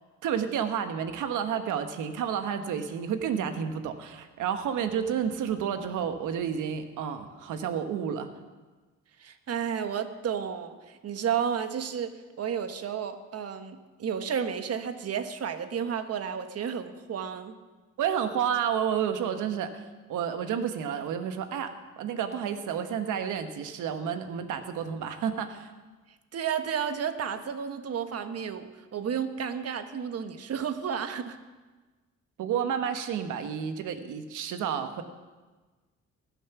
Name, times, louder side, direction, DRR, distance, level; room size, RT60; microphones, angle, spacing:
voice 1, 0.2-8.3 18.0-19.8 20.1-25.7 32.4-35.0, right 8 dB, 85° right, 8 dB, 1.2 m, -30 dB
voice 2, 9.2-17.5 26.3-31.4, right 7 dB, 55° right, 9 dB, 1.2 m, -32 dB
20.0 x 7.3 x 5.9 m, 1.3 s
cardioid pair, 90°, 30 cm